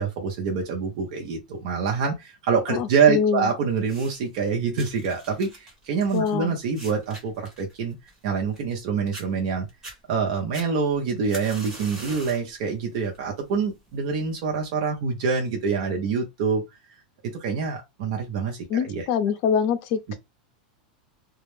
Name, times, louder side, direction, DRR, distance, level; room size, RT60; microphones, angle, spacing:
voice 1, 0.0-8.0 8.2-9.7 10.1-16.6 17.2-19.1, right 5 dB, 60° right, 0.7 m, -26 dB
voice 2, 2.7-3.5 6.1-6.5 18.7-20.1, left 7 dB, 45° left, 0.5 m, -24 dB
sound 1, 3.8-4.4 4.8-8.8 9.1-9.3 9.7-10.0 10.5-12.5 12.9-13.3 14.1-14.2, right 1 dB, 15° right, 1.1 m, -43 dB
2.3 x 2.1 x 3.1 m
supercardioid pair, 145°, 5 cm